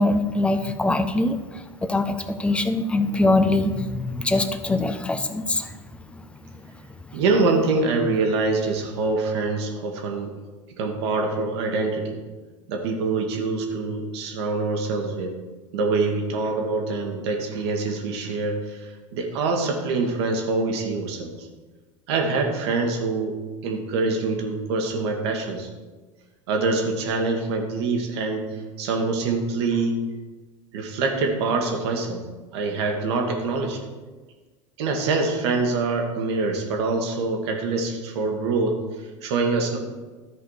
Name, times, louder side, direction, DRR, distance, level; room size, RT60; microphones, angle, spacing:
voice 1, 0.0-5.7 6.1-6.2, left 2 dB, 5° left, 9 dB, 0.6 m, -23 dB
voice 2, 7.1-10.4 10.8-12.2 12.7-15.4 15.7-21.5 22.1-25.7 26.5-30.0 30.7-32.2 32.5-33.8 34.8-39.8, right 3 dB, 55° right, 3 dB, 1.6 m, -25 dB
13.0 x 5.0 x 4.8 m, 1.3 s
figure-of-eight pair, 80°, 17 cm